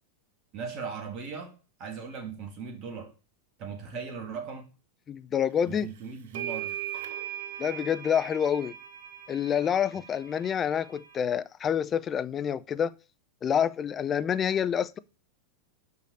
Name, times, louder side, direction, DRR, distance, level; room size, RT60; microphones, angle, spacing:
voice 1, 0.5-1.5 1.8-3.1 3.6-4.7 5.7-6.7, right 5 dB, 40° right, 1.8 m, -38 dB
voice 2, 5.1-5.9 7.6-8.7 9.3-12.9 13.4-15.0, left 8 dB, 25° left, 0.5 m, -27 dB
sound 1, 5.7-5.8 6.3-11.2, right 12 dB, 55° right, 0.9 m, -39 dB
6.0 x 5.6 x 6.7 m
figure-of-eight pair, 90°, 0 cm